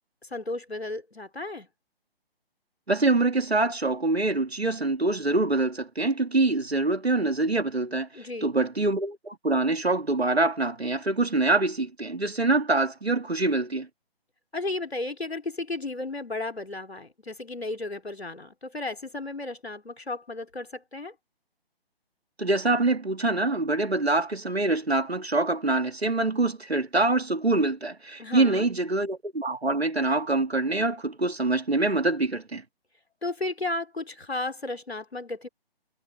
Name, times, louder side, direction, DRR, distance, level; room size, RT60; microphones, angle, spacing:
voice 1, 0.2-1.7 8.1-8.5 14.5-21.1 28.2-28.7 33.2-35.5, left 2 dB, 80° left, 3.4 m, -34 dB
voice 2, 2.9-8.1 8.4-13.9 22.4-32.6, right 2 dB, 80° right, 2.0 m, -25 dB
figure-of-eight pair, 140°, 31 cm